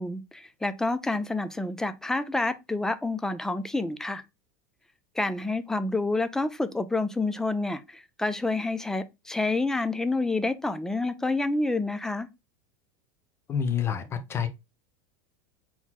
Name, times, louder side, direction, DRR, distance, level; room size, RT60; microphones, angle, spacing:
voice 1, 0.0-4.2 5.2-12.3, left 2 dB, 5° left, 0.4 m, -28 dB
voice 2, 13.5-14.5, left 7 dB, 25° left, 0.8 m, -28 dB
4.0 x 3.0 x 4.0 m
supercardioid pair, 140°, 10 cm